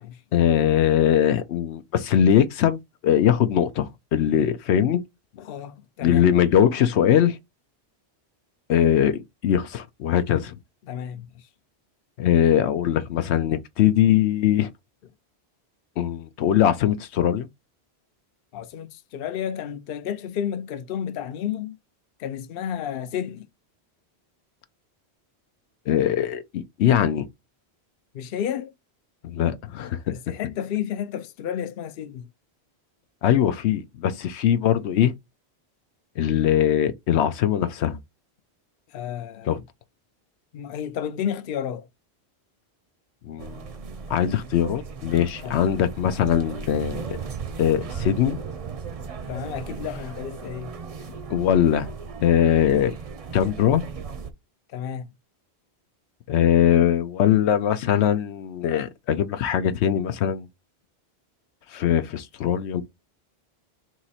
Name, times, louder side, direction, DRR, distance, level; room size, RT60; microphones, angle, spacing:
voice 1, 0.3-5.0 6.0-7.4 8.7-10.5 12.2-14.7 16.0-17.5 25.9-27.3 29.2-30.1 33.2-35.1 36.2-38.0 39.4-39.6 43.3-43.6 44.1-47.2 47.6-48.4 51.3-51.9 52.2-52.9 53.3-53.8 56.3-60.5 61.7-62.8, left 10 dB, 90° left, 0.9 m, -21 dB
voice 2, 5.4-6.2 10.9-11.3 18.5-21.8 22.2-23.5 28.1-28.7 30.1-32.2 38.9-39.6 40.5-41.8 45.4-45.6 49.3-50.7 54.7-55.0, left 9 dB, 65° left, 0.8 m, -31 dB
sound 1, 43.4-54.3, right 5 dB, 45° right, 0.5 m, -36 dB
3.7 x 3.0 x 4.1 m
omnidirectional pair, 1.1 m